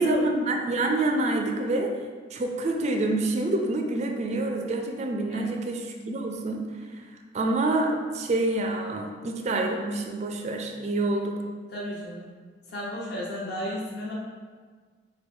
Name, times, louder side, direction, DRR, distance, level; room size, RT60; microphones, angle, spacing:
voice 1, 0.0-1.9 2.3-6.6 7.3-11.4, right 2 dB, 40° right, 3 dB, 0.3 m, -27 dB
voice 2, 11.7-12.3 12.7-14.1, right 1 dB, 65° left, -5 dB, 1.0 m, -30 dB
4.6 x 2.2 x 3.4 m, 1.5 s
head